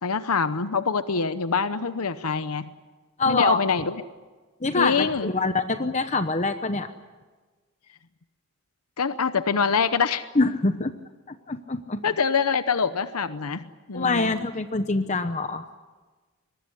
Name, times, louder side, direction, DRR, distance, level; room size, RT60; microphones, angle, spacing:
voice 1, 0.0-2.7 3.3-4.0 4.8-5.3 9.0-10.2 12.0-14.3, left 5 dB, 90° left, 12 dB, 0.9 m, -25 dB
voice 2, 3.2-3.6 4.6-6.9 10.4-10.9 11.3-12.0 13.9-15.7, left 3 dB, 30° left, 9 dB, 0.9 m, -25 dB
23.0 x 21.0 x 9.9 m, 1.3 s
head